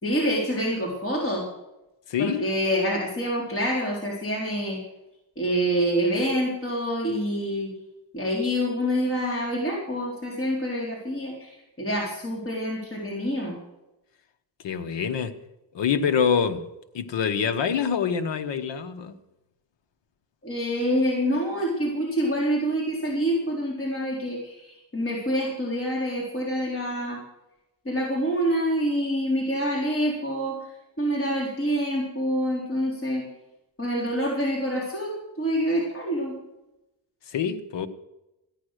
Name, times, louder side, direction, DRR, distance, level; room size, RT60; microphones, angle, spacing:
voice 1, 0.0-1.4 2.2-4.8 5.4-7.7 8.1-13.6 20.4-27.2 27.9-30.6 31.0-33.3 33.8-36.3, equal, 30° left, 4.0 m, -26 dB
voice 2, 2.1-2.5 14.6-15.3 15.7-16.7 16.9-19.1 37.3-37.9, left 7 dB, 70° left, 1.3 m, -25 dB
14.0 x 10.0 x 6.5 m
cardioid pair, 95°, 44 cm